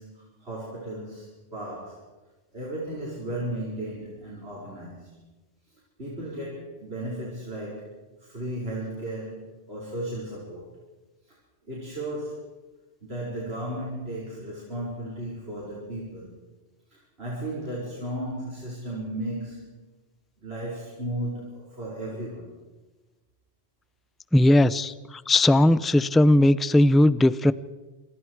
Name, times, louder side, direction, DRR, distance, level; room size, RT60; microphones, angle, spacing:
voice 1, 0.0-2.1 2.5-5.1 6.0-10.7 11.3-11.4 11.7-12.5 13.0-16.3 16.9-19.8 20.4-22.5, right 1 dB, 55° right, -4 dB, 5.6 m, -35 dB
voice 2, 24.3-27.5, left 1 dB, ahead, 15 dB, 0.4 m, -18 dB
27.5 x 27.5 x 4.8 m, 1.2 s
omnidirectional pair, 1.2 m